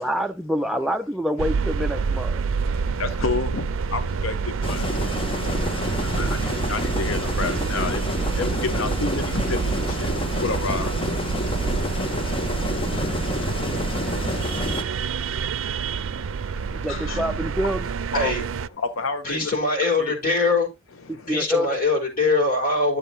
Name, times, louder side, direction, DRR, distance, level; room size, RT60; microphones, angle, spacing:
voice 1, 0.0-2.4 16.7-17.8 21.3-21.8, equal, ahead, 0.4 m, -26 dB
sound 1, 1.4-18.7, right 5 dB, 85° right, 0.4 m, -27 dB
voice 2, 2.3-17.7 18.1-18.3 18.7-19.6 19.8-20.1 21.0-21.4, left 4 dB, 85° left, 0.8 m, -33 dB
sound 2, 4.6-14.8, left 2 dB, 25° left, 0.8 m, -29 dB
voice 3, 19.2-20.7 21.3-23.0, left 3 dB, 45° left, 4.0 m, -22 dB
11.0 x 7.5 x 2.7 m
head